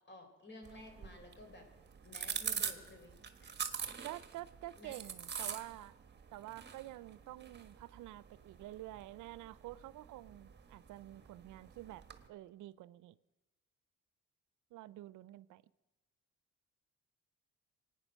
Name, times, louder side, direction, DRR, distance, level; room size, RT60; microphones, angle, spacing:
voice 1, 0.1-1.7 2.0-3.6 4.8-5.0, left 2 dB, 35° left, 3.9 m, -54 dB
sound 1, 0.6-12.3, right 7 dB, 35° right, 1.4 m, -45 dB
voice 2, 4.0-5.9 6.3-13.2 14.7-15.6, right 15 dB, 80° right, 0.5 m, -49 dB
23.5 x 9.4 x 6.3 m
cardioid pair, 90°, 30 cm